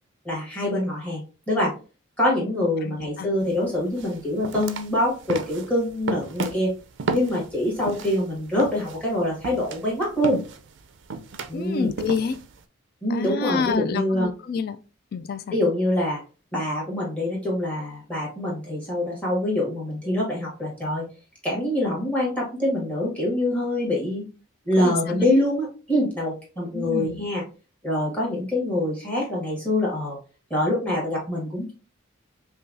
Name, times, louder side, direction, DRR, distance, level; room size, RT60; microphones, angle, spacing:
voice 1, 0.3-1.7 2.2-6.7 7.1-10.4 11.5-11.9 13.0-14.3 15.5-16.2 16.5-21.0 21.4-24.2 24.7-27.4 27.8-30.2 30.5-31.7, left 1 dB, 5° left, 1.7 m, -25 dB
voice 2, 2.8-3.3 11.5-12.4 13.1-14.8 15.1-15.6 24.8-25.3 26.7-27.3, left 5 dB, 45° left, 0.3 m, -28 dB
sound 1, 3.4-3.5 4.0-8.2 8.6-12.6, right 4 dB, 60° right, 0.4 m, -33 dB
5.4 x 2.4 x 2.5 m
head